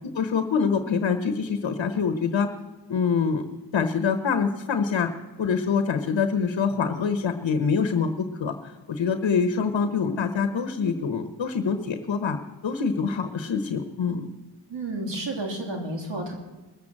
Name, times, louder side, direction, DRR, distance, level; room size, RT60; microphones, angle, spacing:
voice 1, 0.1-2.5 2.9-3.5 3.7-5.1 5.4-8.6 8.9-12.4 12.6-14.3, left 5 dB, 75° left, 8 dB, 1.1 m, -25 dB
voice 2, 14.7-16.3, right 2 dB, 70° right, 1 dB, 3.0 m, -31 dB
20.0 x 7.8 x 7.5 m, 1.2 s
cardioid pair, 55°, 45 cm